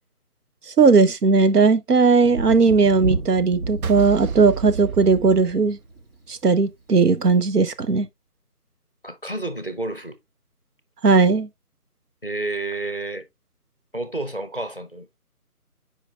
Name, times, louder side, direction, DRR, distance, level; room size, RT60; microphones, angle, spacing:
voice 1, 0.8-5.8 6.3-8.1 11.0-11.5, right 4 dB, 90° right, 0.9 m, -17 dB
Thunder, 2.2-6.1 7.4-7.5, right 3 dB, 40° right, 1.0 m, -31 dB
sound 1, 3.8-6.2, right 7 dB, 70° right, 0.6 m, -32 dB
voice 2, 9.0-10.2 12.2-13.2 13.9-15.2, right 2 dB, 35° left, 0.6 m, -30 dB
8.8 x 5.0 x 2.3 m
figure-of-eight pair, 180°, 45 cm